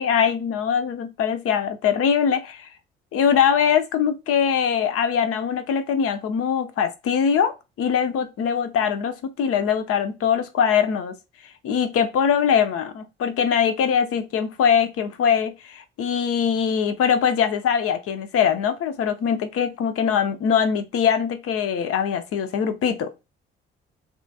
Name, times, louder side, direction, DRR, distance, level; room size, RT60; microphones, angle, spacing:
voice 1, 0.0-2.7 3.1-11.1 11.6-23.1, left 7 dB, 50° left, 0.6 m, -22 dB
2.8 x 2.4 x 2.7 m
figure-of-eight pair, 45°, 30 cm